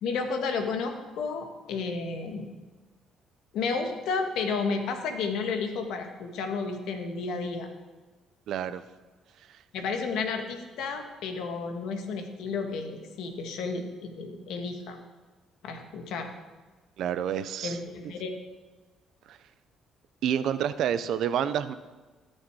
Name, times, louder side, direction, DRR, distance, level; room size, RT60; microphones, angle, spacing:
voice 1, 0.0-2.5 3.5-7.7 9.7-15.0 15.6-16.3 17.6-18.4, left 4 dB, 80° left, 5 dB, 1.7 m, -32 dB
voice 2, 8.5-8.8 17.0-17.8 18.0-18.1 19.3-19.4 20.2-21.7, right 9 dB, 70° right, 13 dB, 0.7 m, -28 dB
19.0 x 6.5 x 4.8 m, 1.3 s
cardioid pair, 85°, 0 cm